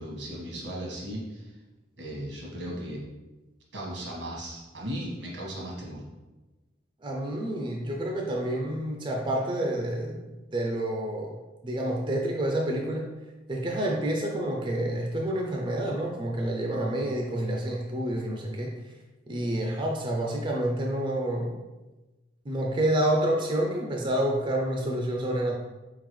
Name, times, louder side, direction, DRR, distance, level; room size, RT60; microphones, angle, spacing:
voice 1, 0.0-1.5 2.0-3.0 3.7-6.0, right 1 dB, 85° right, -3 dB, 1.5 m, -36 dB
voice 2, 7.0-11.4 11.6-13.1 13.5-18.7 19.3-21.6 22.5-25.6, right 1 dB, 25° right, -1 dB, 0.5 m, -28 dB
4.4 x 3.8 x 3.1 m, 1.1 s
head